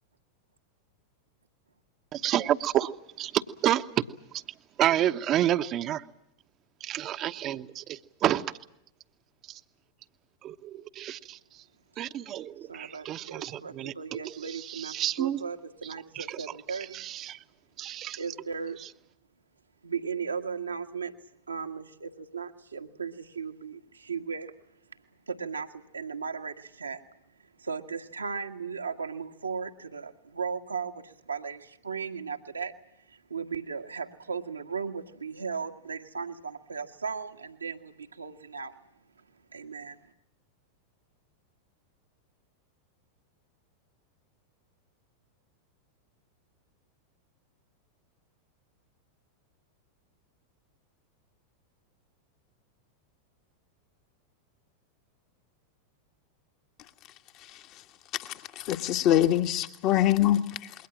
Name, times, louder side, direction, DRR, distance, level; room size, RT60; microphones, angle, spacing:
voice 1, 2.1-2.9 3.2-4.0 4.3-4.4 4.8-6.1 6.8-8.6 9.5-9.6 10.4-11.6 12.0-15.4 16.1-17.4 17.8-18.2, right 12 dB, 35° right, 1.1 m, -30 dB
voice 2, 12.7-17.1 18.2-18.8 19.8-21.1 21.5-24.5 25.3-27.0 27.6-32.7 33.1-38.7 39.5-40.0, right 5 dB, 75° right, 1.8 m, -36 dB
voice 3, 58.2-60.7, left 12 dB, 40° left, 1.7 m, -24 dB
27.0 x 22.5 x 7.4 m
figure-of-eight pair, 90°, 0 cm